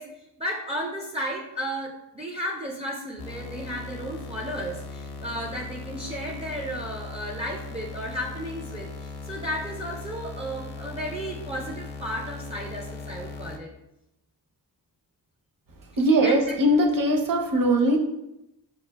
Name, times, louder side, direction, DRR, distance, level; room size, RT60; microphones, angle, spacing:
voice 1, 0.0-13.7 16.2-16.4, equal, 15° right, -1 dB, 0.3 m, -34 dB
sound 1, 3.2-13.6, left 3 dB, 65° left, 0.6 m, -39 dB
voice 2, 16.0-18.0, right 1 dB, 55° right, 2 dB, 0.7 m, -20 dB
5.6 x 2.4 x 2.2 m, 0.90 s
cardioid pair, 100°, 40 cm